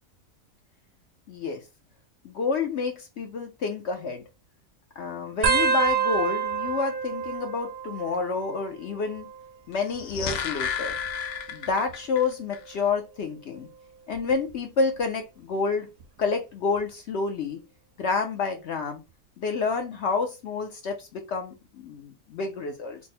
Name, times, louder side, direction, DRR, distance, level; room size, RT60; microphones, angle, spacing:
voice 1, 1.3-1.6 2.2-4.2 5.0-9.3 9.7-10.9 11.5-13.7 14.1-15.9 16.2-17.6 18.0-19.0 19.4-23.0, left 4 dB, 60° left, 4 dB, 0.8 m, -29 dB
sound 1, 5.4-8.6 8.9-9.5 10.5-12.0 12.6-12.9 14.1-14.5 16.0-16.1, right 6 dB, 60° right, 0.7 m, -29 dB
sound 2, 9.8-12.2 12.5-12.6, left 7 dB, 90° left, 1.1 m, -32 dB
3.4 x 2.0 x 4.1 m, 0.27 s
omnidirectional pair, 1.5 m